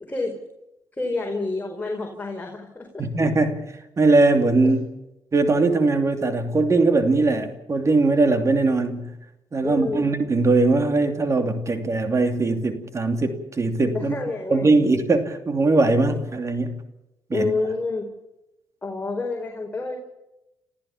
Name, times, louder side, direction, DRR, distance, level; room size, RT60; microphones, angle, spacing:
voice 1, 0.1-0.4 0.9-3.0 9.6-10.0 13.9-14.7 17.3-18.1 18.8-20.0, left 3 dB, 20° left, 4.8 m, -28 dB
voice 2, 3.0-3.6 4.0-4.8 5.3-9.1 9.5-14.1 14.5-16.8 17.3-17.5, right 3 dB, 40° right, 2.8 m, -20 dB
27.5 x 14.5 x 7.3 m
cardioid pair, 70°, 8 cm